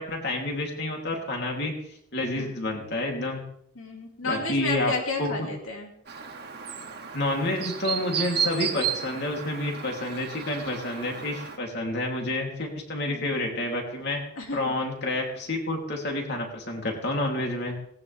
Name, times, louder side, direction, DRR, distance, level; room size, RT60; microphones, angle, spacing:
voice 1, 0.0-1.7 2.1-3.4 4.2-4.9 5.2-5.3 7.1-14.2 14.5-17.8, left 1 dB, 50° left, 0 dB, 3.4 m, -29 dB
voice 2, 2.3-2.7 3.8-5.9 13.1-13.6 14.4-14.7, left 3 dB, 75° left, 1 dB, 2.7 m, -33 dB
Chirp tweet, 6.1-11.6, right 7 dB, 50° right, 2.0 m, -33 dB
19.0 x 19.0 x 3.6 m, 0.69 s
head